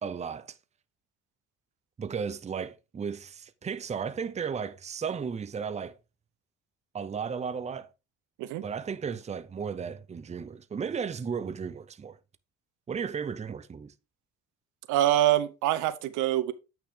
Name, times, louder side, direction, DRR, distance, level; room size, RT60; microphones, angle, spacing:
voice 1, 0.0-0.6 2.0-5.9 6.9-7.9 8.6-12.2 12.9-13.9, right 6 dB, 20° right, 0.6 m, -34 dB
voice 2, 14.9-16.5, right 13 dB, 85° right, 0.9 m, -25 dB
8.6 x 5.9 x 3.7 m
cardioid pair, 95°, 30 cm